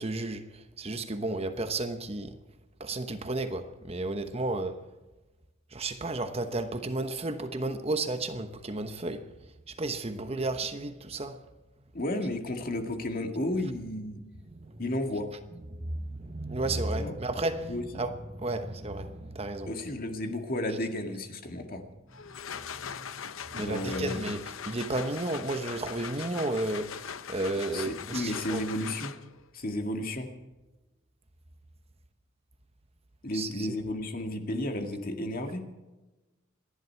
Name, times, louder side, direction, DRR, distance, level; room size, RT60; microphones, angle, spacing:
voice 1, 0.0-2.4 2.8-4.8 5.7-9.3 9.7-11.4 14.6-14.8 15.8-19.7 22.8-23.1 23.5-28.6 33.3-33.7, right 2 dB, 30° right, 1.0 m, -33 dB
voice 2, 11.9-14.2 14.8-15.3 17.0-17.2 17.7-17.8 19.7-21.8 23.5-24.2 27.7-29.1 29.5-30.3 33.2-35.6, left 1 dB, 45° left, 2.0 m, -33 dB
sound 1, 22.1-29.5, left 7 dB, 85° left, 0.8 m, -40 dB
28.0 x 11.0 x 4.6 m
head